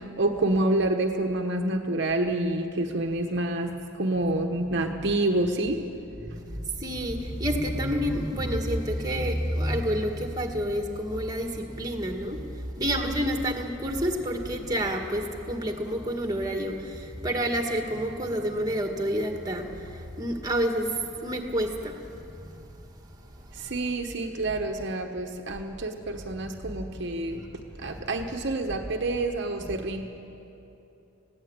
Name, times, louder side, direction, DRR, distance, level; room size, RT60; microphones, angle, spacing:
voice 1, 0.0-5.8 23.5-30.0, right 2 dB, 55° right, 3 dB, 1.1 m, -28 dB
voice 2, 6.3-22.6 23.6-23.7 27.3-27.4 27.9-28.0, equal, 20° right, 3 dB, 1.8 m, -29 dB
20.0 x 16.0 x 8.8 m, 2.9 s
head